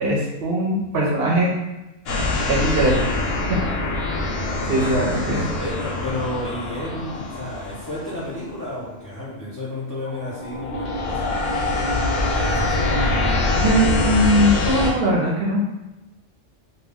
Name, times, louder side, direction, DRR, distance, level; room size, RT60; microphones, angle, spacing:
voice 1, 0.0-1.5 2.5-3.1 3.5-3.6 4.7-5.5 13.6-15.6, equal, 60° right, -2 dB, 0.7 m, -20 dB
sound 1, 2.1-9.0 9.5-9.8 10.1-14.9, left 2 dB, 65° left, 0.7 m, -24 dB
voice 2, 4.8-13.6, left 1 dB, 25° left, -9 dB, 0.4 m, -33 dB
2.2 x 2.1 x 3.4 m, 0.98 s
omnidirectional pair, 1.3 m